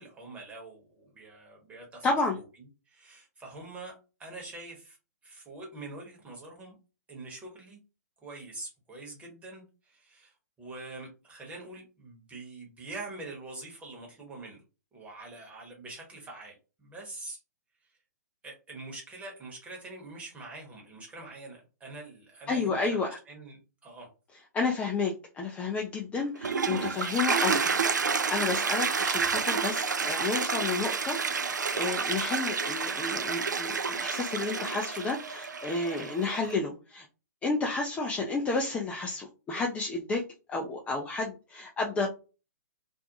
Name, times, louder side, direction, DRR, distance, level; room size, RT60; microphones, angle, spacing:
voice 1, 0.0-2.1 2.4-2.5 2.9-3.9 4.2-5.0 5.2-6.8 7.1-7.8 8.2-14.6 14.9-17.4 18.4-24.1 35.9-36.1, right 2 dB, 15° right, 0 dB, 1.0 m, -45 dB
voice 2, 2.0-2.4 22.5-23.1 24.5-27.7 28.0-31.2 31.5-37.1 37.4-40.2 40.5-42.1, left 3 dB, 15° left, 0 dB, 0.4 m, -31 dB
Toilet flush, 26.2-36.5, right 5 dB, 80° right, 0.4 m, -30 dB
2.5 x 2.1 x 2.8 m, 0.32 s
figure-of-eight pair, 120°, 10 cm